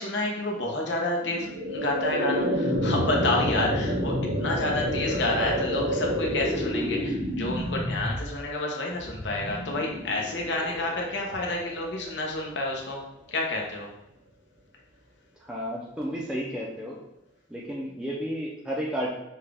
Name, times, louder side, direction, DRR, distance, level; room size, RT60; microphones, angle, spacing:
voice 1, 0.0-13.0 13.3-13.9, left 2 dB, 80° left, -1 dB, 0.8 m, -29 dB
sound 1, 1.2-12.3, equal, 85° right, 1.3 m, -29 dB
voice 2, 15.5-17.0 17.5-19.1, equal, 5° right, -4 dB, 0.5 m, -32 dB
5.7 x 2.3 x 3.4 m, 0.83 s
head